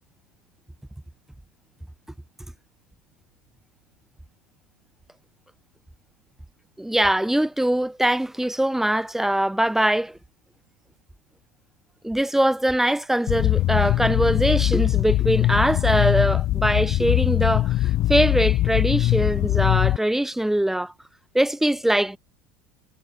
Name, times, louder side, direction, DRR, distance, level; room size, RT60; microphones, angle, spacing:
voice 1, 6.8-10.2 12.0-20.9 21.3-22.2, right 1 dB, 5° right, 1.5 m, -22 dB
sound 1, 13.3-20.0, left 15 dB, 50° left, 0.5 m, -21 dB
hypercardioid pair, 85°, 8 cm